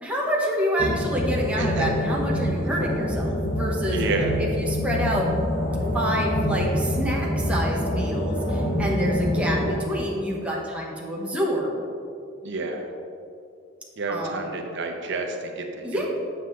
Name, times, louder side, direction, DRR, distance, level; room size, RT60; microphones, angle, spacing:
voice 1, 0.0-4.0 4.4-5.3 5.9-11.8 14.1-14.5 15.8-16.1, equal, 5° right, -4 dB, 1.0 m, -27 dB
sound 1, 0.8-9.8, left 1 dB, 50° left, 1.1 m, -26 dB
voice 2, 1.6-1.9 3.9-4.4 12.4-12.9 14.0-16.1, right 3 dB, 65° right, 3 dB, 0.9 m, -30 dB
7.4 x 7.2 x 3.2 m, 2.6 s
head